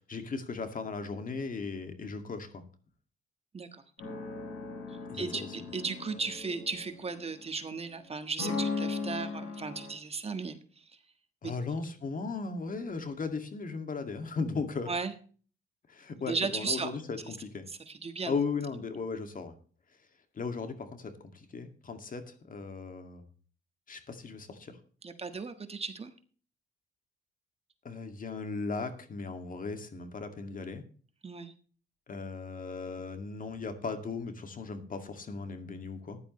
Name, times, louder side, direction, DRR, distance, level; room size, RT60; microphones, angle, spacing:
voice 1, 0.0-2.6 5.1-5.5 11.4-14.9 15.9-17.6 18.2-19.5 20.3-23.3 23.9-24.8 27.8-30.8 32.1-36.2, left 4 dB, 45° left, 7 dB, 2.1 m, -37 dB
sound 1, 4.0-7.6 8.4-9.9, left 4 dB, 90° left, 6.8 m, -37 dB
voice 2, 5.1-10.8 11.4-11.5 14.9-15.1 16.3-16.9 17.7-18.3 25.0-26.1 31.2-31.5, right 4 dB, 30° right, 8 dB, 1.4 m, -36 dB
15.0 x 11.0 x 3.1 m, 0.41 s
cardioid pair, 90°, 20 cm